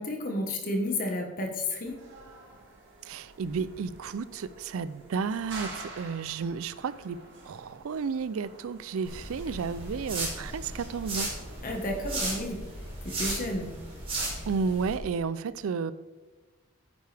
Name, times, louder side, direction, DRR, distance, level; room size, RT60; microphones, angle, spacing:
voice 1, 0.0-2.0 11.6-12.6 13.0-13.7, left 1 dB, 40° left, 3 dB, 1.4 m, -31 dB
sound 1, 1.8-12.2, right 2 dB, 50° right, 1.9 m, -48 dB
voice 2, 3.1-7.2 7.4-11.3 14.5-15.9, right 5 dB, 70° right, 16 dB, 0.4 m, -32 dB
sound 2, 9.0-15.0, right 2 dB, 25° right, 2.8 m, -35 dB
9.4 x 9.2 x 3.4 m, 1.3 s
head